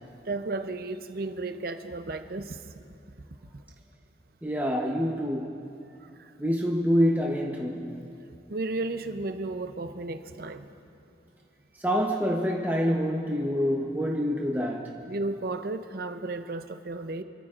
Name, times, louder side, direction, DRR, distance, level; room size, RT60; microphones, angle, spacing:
voice 1, 0.2-2.7 3.5-3.6 6.0-6.3 8.5-10.7 15.0-17.2, right 2 dB, 50° right, 9 dB, 0.6 m, -34 dB
voice 2, 4.4-5.6 6.4-8.1 10.3-10.4 11.8-15.0, equal, 10° right, -2 dB, 0.9 m, -26 dB
27.0 x 13.5 x 2.5 m, 2.9 s
head